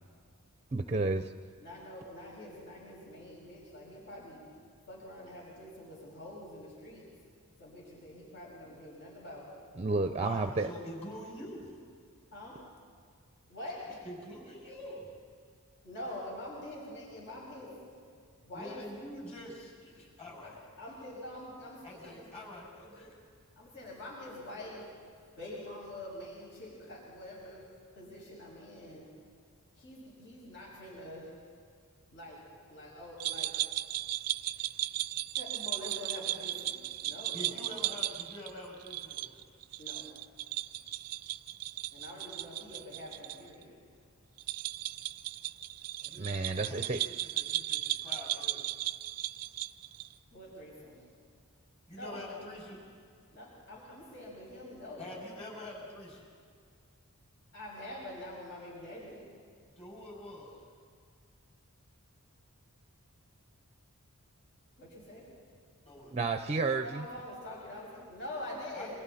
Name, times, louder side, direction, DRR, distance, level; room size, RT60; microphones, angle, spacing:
voice 1, 0.7-1.3 9.8-10.7 46.2-47.0 66.1-67.1, right 3 dB, 30° right, 8 dB, 0.7 m, -31 dB
voice 2, 1.6-4.4 4.9-7.1 7.6-9.5 12.3-12.6 13.5-14.1 15.8-17.8 18.4-18.8 20.8-22.3 23.6-24.8 25.4-27.7 27.9-29.1 29.8-31.3 32.1-33.5 34.5-34.7 35.4-37.7 39.8-40.1 41.9-43.7 50.3-51.0 51.9-52.4 53.3-55.1 57.5-59.2 64.8-65.3 66.8-69.0, left 1 dB, 55° left, -4 dB, 6.8 m, -45 dB
voice 3, 10.2-11.8 14.0-15.1 18.5-20.6 21.8-23.2 37.3-39.5 46.0-48.8 51.9-52.8 55.0-56.3 59.8-60.6 65.8-66.4 68.7-69.0, left 1 dB, 30° left, -3 dB, 7.2 m, -46 dB
sound 1, 33.2-43.4 43.6-43.7 44.4-50.1, right 15 dB, 85° right, 0.5 m, -36 dB
28.5 x 26.0 x 4.3 m, 2.1 s
head